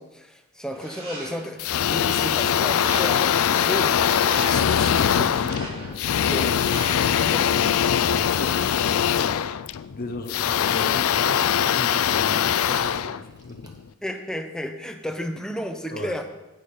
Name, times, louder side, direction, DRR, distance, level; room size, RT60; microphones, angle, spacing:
voice 1, 0.0-5.6 6.2-7.7 12.3-12.6 14.0-16.2, equal, 5° left, 6 dB, 0.8 m, -33 dB
sound 1, 0.7-1.6 2.1-3.4 3.8-4.7 5.3-6.1 6.6-7.2, right 1 dB, 75° right, 4.3 m, -37 dB
sound 2, 1.6-13.8, left 9 dB, 70° left, 0.4 m, -22 dB
voice 2, 8.0-9.3 9.9-11.4 11.6-13.7 15.9-16.2, left 2 dB, 45° left, 6 dB, 0.7 m, -36 dB
sound 3, 10.0-10.1 10.5-14.1 14.6-14.7 15.2-15.3, right 2 dB, 15° right, 1.1 m, -49 dB
9.5 x 8.8 x 5.1 m, 1.0 s
head